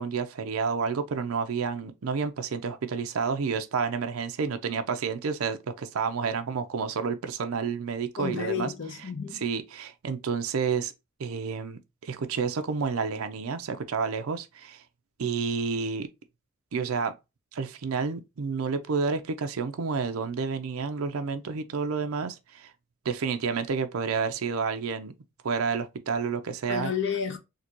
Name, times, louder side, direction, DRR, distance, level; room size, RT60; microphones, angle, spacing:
voice 1, 0.0-8.7 9.4-10.9 11.2-14.8 15.2-16.1 16.7-17.1 17.5-22.7 23.0-25.1 25.4-26.9, right 5 dB, 75° right, 0.5 m, -30 dB
voice 2, 8.2-9.4 26.7-27.4, left 6 dB, 55° left, 0.7 m, -31 dB
3.8 x 2.2 x 2.9 m
head